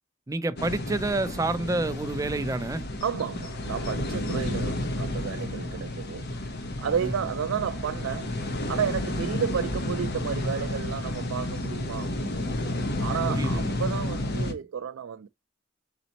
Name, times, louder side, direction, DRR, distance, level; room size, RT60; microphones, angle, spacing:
voice 1, 0.3-2.8 13.3-13.8, right 2 dB, 15° right, 0.4 m, -28 dB
sound 1, 0.6-14.5, left 1 dB, 55° left, 0.9 m, -31 dB
voice 2, 3.0-12.5 13.0-15.3, right 7 dB, 90° right, 0.4 m, -32 dB
4.2 x 4.0 x 2.8 m
head